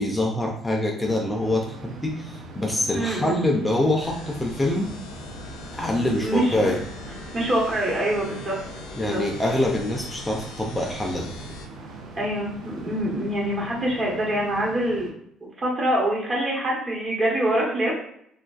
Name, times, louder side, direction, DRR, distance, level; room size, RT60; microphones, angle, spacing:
voice 1, 0.0-4.9 5.7-6.8 8.9-11.3, left 1 dB, 15° left, 0 dB, 0.4 m, -25 dB
sound 1, 1.0-15.1, right 3 dB, 75° right, 0.5 m, -42 dB
voice 2, 2.9-3.4 6.2-6.7 7.3-8.5 9.0-9.2 12.1-15.1 15.6-18.0, right 1 dB, 40° right, -4 dB, 1.1 m, -25 dB
sound 2, 4.0-11.7, left 3 dB, 80° left, 0.3 m, -41 dB
2.4 x 2.2 x 2.3 m, 0.71 s
supercardioid pair, 80°, 0 cm